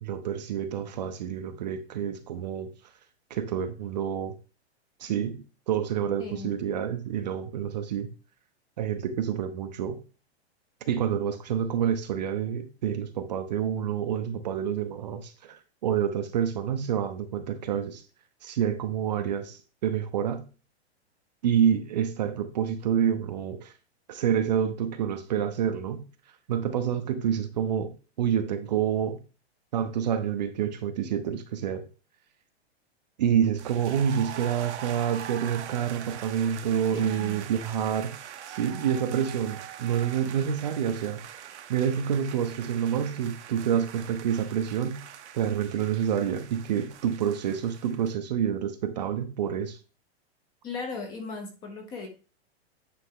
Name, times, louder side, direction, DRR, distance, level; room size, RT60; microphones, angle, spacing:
voice 1, 0.0-2.7 3.3-4.3 5.0-8.1 8.8-10.0 10.8-18.0 18.4-20.5 21.4-23.7 24.1-26.1 26.5-29.2 29.7-31.8 33.2-38.2 38.5-45.1 45.3-49.8, right 8 dB, 40° right, 0.6 m, -28 dB
voice 2, 6.2-6.5 36.9-37.4 50.6-52.1, left 4 dB, 15° left, 0.7 m, -37 dB
sound 1, 33.6-48.2, right 10 dB, 90° right, 0.9 m, -43 dB
9.3 x 3.4 x 3.7 m
supercardioid pair, 175°, 33 cm